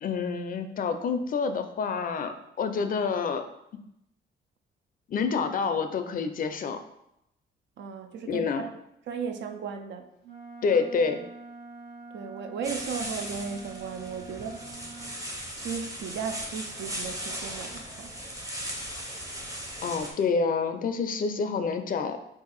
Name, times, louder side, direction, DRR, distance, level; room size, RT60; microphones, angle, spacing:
voice 1, 0.0-3.5 5.1-6.8 8.2-8.7 10.6-11.2 19.8-22.2, left 5 dB, 45° left, 8 dB, 0.4 m, -28 dB
voice 2, 7.8-8.7 9.1-10.1 12.1-14.7 15.6-18.1, right 6 dB, 65° right, 7 dB, 0.4 m, -36 dB
Wind instrument woodwind instrument, 10.2-15.2, right 3 dB, 85° right, 1.2 m, -45 dB
sound 1, 12.6-20.1, right 1 dB, 15° right, 0.7 m, -38 dB
2.6 x 2.4 x 3.9 m, 0.80 s
cardioid pair, 90°, 20 cm